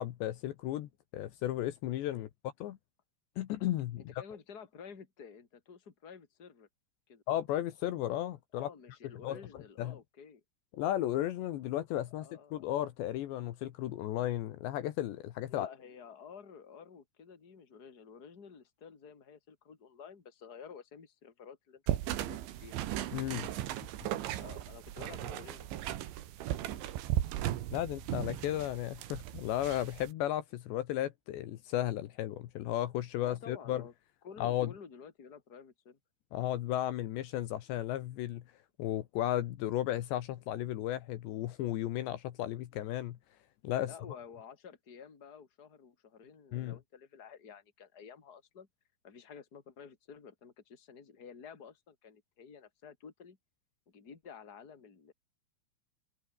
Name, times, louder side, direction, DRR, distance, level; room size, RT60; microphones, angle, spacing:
voice 1, 0.0-2.8 3.4-4.0 7.3-8.7 9.2-9.4 9.8-10.0 10.7-15.7 23.1-23.5 24.0-24.1 27.7-33.8 34.4-34.7 36.3-38.4 38.8-43.2 43.6-43.9 46.5-46.8, left 13 dB, 75° left, 3.4 m, -34 dB
voice 2, 4.0-6.7 7.1-7.2 8.5-10.4 12.1-12.6 15.5-23.1 24.3-25.8 26.4-27.0 33.2-33.9 34.2-36.0 43.8-48.7 49.0-53.4 53.9-55.1, left 6 dB, 25° left, 3.0 m, -52 dB
sound 1, 21.9-30.1, right 13 dB, 75° right, 4.0 m, -37 dB
omnidirectional pair, 5.4 m